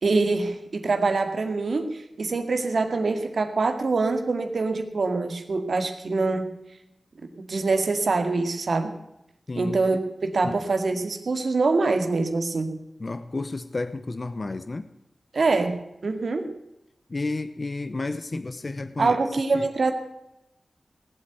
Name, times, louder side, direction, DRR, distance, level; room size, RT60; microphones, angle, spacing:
voice 1, 0.0-6.5 7.5-8.9 9.6-12.7 15.3-16.5 19.0-19.9, right 3 dB, 70° right, 6 dB, 2.1 m, -24 dB
voice 2, 9.5-9.8 10.4-10.6 13.0-14.9 17.1-19.3 19.5-19.7, left 3 dB, 45° left, 11 dB, 0.9 m, -31 dB
19.0 x 8.2 x 9.3 m, 0.88 s
wide cardioid pair, 85°, 0 cm